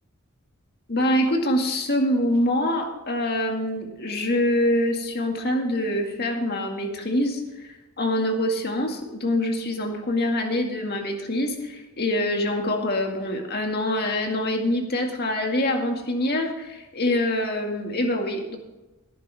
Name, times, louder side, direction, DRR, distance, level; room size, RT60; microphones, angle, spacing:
voice 1, 0.9-18.6, left 1 dB, 45° left, 3 dB, 2.1 m, -25 dB
17.0 x 10.0 x 3.5 m, 1.1 s
head